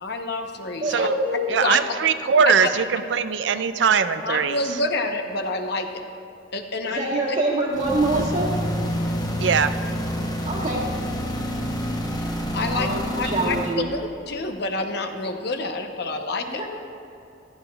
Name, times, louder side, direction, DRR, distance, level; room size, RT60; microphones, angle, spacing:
voice 1, 0.0-1.1 1.6-1.8 2.4-2.5 4.2-6.0 6.5-7.1 12.5-12.9 13.2-16.6, left 3 dB, 60° left, 5 dB, 0.9 m, -28 dB
voice 2, 0.8-1.7 6.8-8.5 10.4-10.9 12.4-13.9 16.4-16.7, right 2 dB, 45° right, -8 dB, 1.4 m, -25 dB
voice 3, 1.5-4.6 9.4-9.8, right 6 dB, 70° right, 12 dB, 0.5 m, -21 dB
sound 1, 7.7-13.8, equal, 20° left, 0.8 m, -28 dB
15.0 x 13.0 x 2.4 m, 2.7 s
head